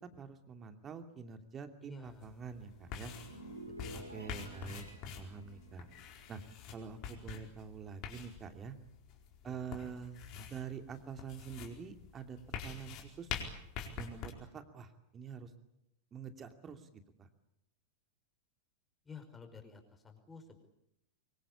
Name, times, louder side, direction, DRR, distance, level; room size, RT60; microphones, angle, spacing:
voice 1, 0.1-3.1 4.1-4.9 5.2-5.9 6.3-6.4 6.7-8.8 9.4-13.5 14.0-15.5 16.1-17.3, right 6 dB, 25° right, 7 dB, 2.7 m, -46 dB
voice 2, 1.8-2.3 3.8-4.6 9.4-9.9 19.1-20.6, left 5 dB, 15° left, 5 dB, 5.3 m, -53 dB
sound 1, 2.1-14.3, left 7 dB, 40° left, 4.6 m, -46 dB
sound 2, 2.7-7.3 7.6-7.9, right 1 dB, 85° right, 3.8 m, -52 dB
24.5 x 23.0 x 8.7 m, 0.79 s
figure-of-eight pair, 90°, 0 cm